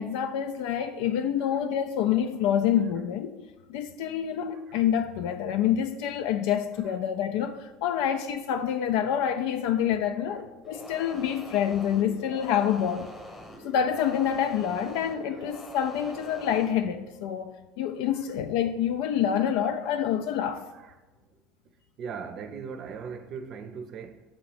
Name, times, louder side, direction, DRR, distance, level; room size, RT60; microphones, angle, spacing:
voice 1, 0.0-3.4 3.7-13.1 13.6-17.5 17.8-20.6, left 9 dB, 75° left, 0.3 m, -27 dB
sound 1, 10.6-16.8, left 1 dB, 10° left, 1.0 m, -44 dB
voice 2, 22.0-24.2, right 6 dB, 45° right, 0.6 m, -39 dB
7.3 x 3.0 x 4.8 m
supercardioid pair, 130°, 0 cm